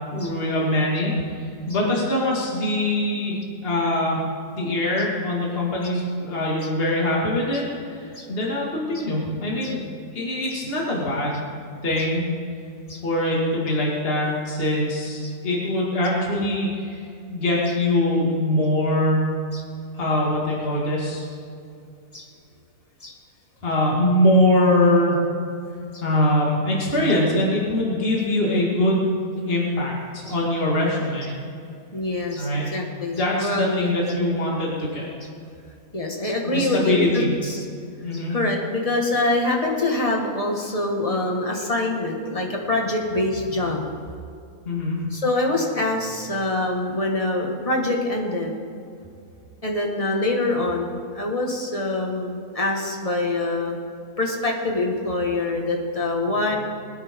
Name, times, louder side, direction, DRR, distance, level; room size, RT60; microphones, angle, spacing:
voice 1, 0.1-3.4 3.6-4.2 4.5-9.8 10.1-11.5 11.8-12.2 13.0-19.2 19.9-21.3 23.6-25.2 26.0-29.1 29.5-31.3 32.4-32.7 33.1-35.1 36.4-37.3 38.0-38.3 44.7-45.0, left 1 dB, 40° left, -4 dB, 2.4 m, -23 dB
voice 2, 1.7-2.1 2.3-2.4 6.6-6.7 7.5-7.6 8.1-8.3 8.9-9.0 9.6-9.7 10.5-10.6 12.0-12.1 12.9-13.0 15.2-15.3 17.6-17.8 19.5-19.6 22.1-22.3 23.0-23.1 25.9-26.0 30.3-30.4 31.9-33.9 35.9-37.7 38.1-43.9 45.1-48.6 49.6-53.8 54.2-56.6, left 2 dB, 25° left, 0 dB, 1.9 m, -25 dB
22.5 x 9.9 x 3.8 m, 2.5 s
omnidirectional pair, 1.6 m